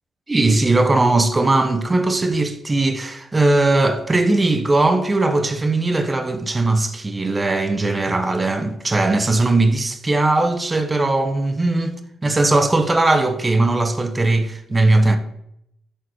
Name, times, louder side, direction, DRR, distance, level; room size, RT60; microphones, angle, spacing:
voice 1, 0.3-15.2, right 2 dB, 20° right, 0.7 m, -19 dB
11.0 x 3.9 x 3.0 m
cardioid pair, 90°, 0 cm